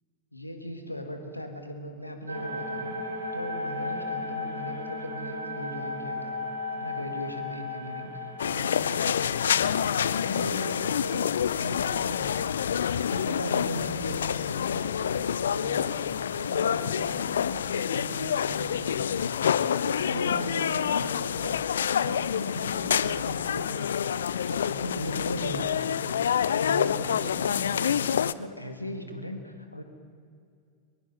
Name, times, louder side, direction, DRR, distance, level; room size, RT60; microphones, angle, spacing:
voice 1, 0.3-3.0 3.3-6.4 6.7-29.8, equal, 85° left, 5 dB, 2.0 m, -38 dB
sound 1, 2.3-13.6 14.1-14.2 14.3-15.1, left 2 dB, 70° right, 3.2 m, -37 dB
sound 2, 8.4-28.3, left 8 dB, 65° left, 0.5 m, -27 dB
22.0 x 22.0 x 5.8 m, 2.3 s
figure-of-eight pair, 90°, 0 cm